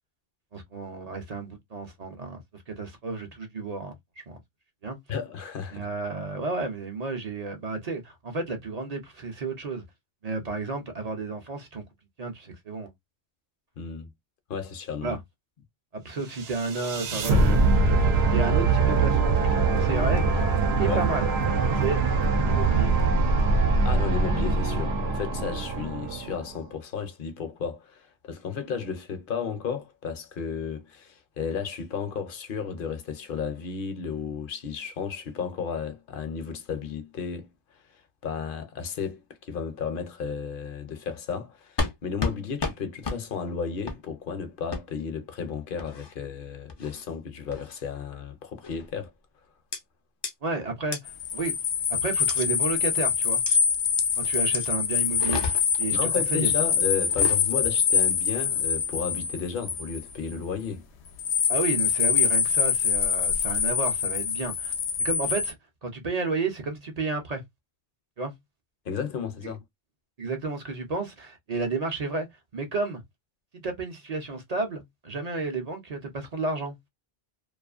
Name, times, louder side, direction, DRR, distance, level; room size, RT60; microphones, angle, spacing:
voice 1, 0.5-3.9 4.3-4.4 4.8-5.0 5.7-9.8 10.2-11.8 12.2-12.9 15.0-15.2 15.9-18.0 18.3-20.4 20.8-21.3 21.7-22.0 22.4-23.2 50.4-51.5 51.9-53.4 54.2-56.5 61.5-64.7 65.0-65.6 65.8-67.4 68.2-68.3 70.2-72.3 72.5-73.0 73.5-76.8, right 3 dB, 45° right, 0.6 m, -32 dB
voice 2, 5.1-5.9 13.8-14.1 14.5-15.2 20.8-21.0 23.8-37.5 38.2-49.1 55.9-60.8 68.9-69.6, left 6 dB, 60° left, 0.7 m, -33 dB
sound 1, 16.3-26.5, right 3 dB, 75° right, 0.9 m, -23 dB
sound 2, 41.8-41.9 42.2-42.4 42.6-42.8 43.0-43.2 43.9-44.0 44.7-44.8 45.8-46.1 46.7-47.0 47.5-47.8 48.6-48.9 49.7-49.8 50.2-50.3 50.9-51.0 52.3-52.5 53.5-53.6 54.5-54.7 55.1-55.8 57.0-57.4, left 4 dB, 40° left, 0.4 m, -31 dB
sound 3, 51.1-60.3 61.2-65.5, left 7 dB, 90° left, 0.8 m, -25 dB
2.5 x 2.4 x 2.4 m
omnidirectional pair, 1.1 m